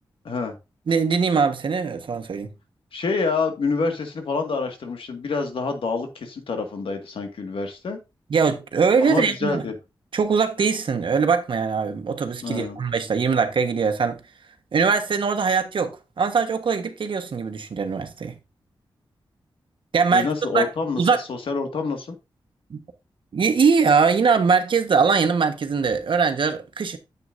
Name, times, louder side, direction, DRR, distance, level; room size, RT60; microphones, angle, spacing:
voice 1, 0.9-2.5 8.3-9.6 10.1-14.2 14.7-18.3 19.9-20.3 20.5-20.7 21.0-21.2 22.7-22.8 23.3-27.0, right 5 dB, 65° right, 1.3 m, -21 dB
voice 2, 2.9-8.0 9.0-9.7 12.4-12.8 20.1-22.2, left 4 dB, 80° left, 1.9 m, -27 dB
9.5 x 8.0 x 2.6 m
wide cardioid pair, 85°, 9 cm